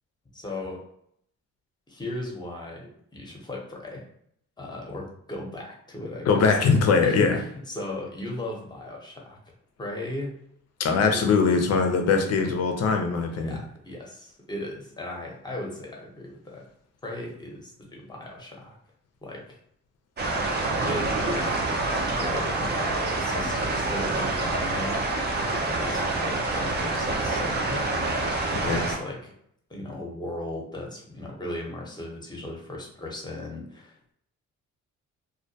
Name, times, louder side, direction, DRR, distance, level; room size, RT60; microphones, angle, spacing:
voice 1, 0.3-0.8 1.9-4.0 4.6-6.5 7.0-9.4 9.8-10.4 11.1-11.4 13.3-16.7 17.0-18.8 19.2-19.6 20.8-25.0 25.8-27.9 28.5-29.3 29.7-34.1, left 1 dB, 15° left, -1 dB, 0.8 m, -37 dB
voice 2, 6.3-7.4 10.8-13.6 28.6-28.8, left 5 dB, 55° left, 5 dB, 0.6 m, -21 dB
sound 1, 20.2-29.0, right 2 dB, 35° right, 0.5 m, -27 dB
2.3 x 2.1 x 2.7 m, 0.69 s
cardioid pair, 90°, 30 cm